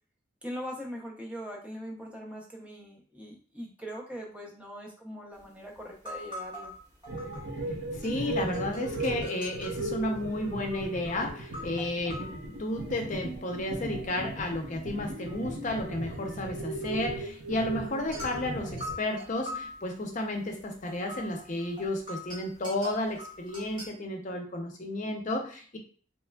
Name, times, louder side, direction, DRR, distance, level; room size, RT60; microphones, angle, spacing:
voice 1, 0.4-6.7, equal, 5° right, -1 dB, 0.6 m, -41 dB
sound 1, 5.3-5.4 5.8-7.7 8.0-14.3 14.6-23.9, left 1 dB, 20° right, 1.3 m, -44 dB
sound 2, 7.1-19.0, right 1 dB, 70° right, 0.8 m, -37 dB
voice 2, 8.0-25.8, left 1 dB, 40° left, 3 dB, 0.6 m, -32 dB
3.5 x 3.0 x 2.2 m, 0.43 s
head